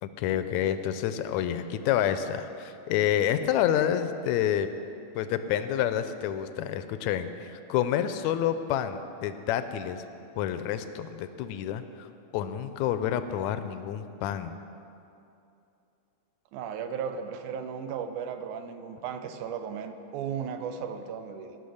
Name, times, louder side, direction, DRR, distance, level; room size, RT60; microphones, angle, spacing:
voice 1, 0.0-4.7 5.2-10.0 10.4-12.1 12.3-14.5, left 10 dB, 80° left, 10 dB, 1.7 m, -28 dB
voice 2, 16.5-21.6, right 7 dB, 85° right, 8 dB, 2.2 m, -35 dB
18.0 x 6.3 x 6.4 m, 2.7 s
omnidirectional pair, 3.5 m